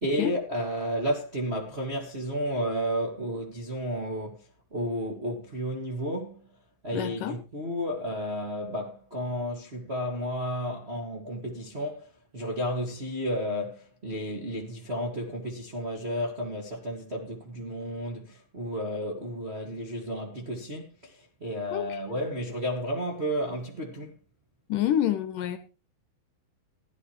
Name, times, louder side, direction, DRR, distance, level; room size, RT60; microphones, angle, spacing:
voice 1, 0.0-6.5 6.8-24.2, equal, 30° right, 1.2 m, -32 dB
voice 2, 6.9-7.3 21.7-22.0 24.7-25.6, left 11 dB, 70° left, 2.2 m, -27 dB
16.0 x 11.5 x 3.1 m
omnidirectional pair, 4.3 m